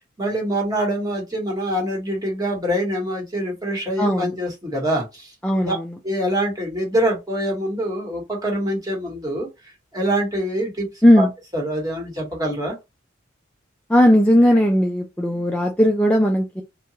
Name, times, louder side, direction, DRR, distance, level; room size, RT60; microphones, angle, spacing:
voice 1, 0.2-5.3 5.6-5.8 6.0-9.5 9.9-10.9 11.2-11.3 11.5-12.8, right 1 dB, 20° right, 1.1 m, -24 dB
voice 2, 4.0-4.3 5.4-5.9 11.0-11.3 13.9-16.6, equal, 5° left, 0.3 m, -17 dB
2.8 x 2.2 x 2.7 m
head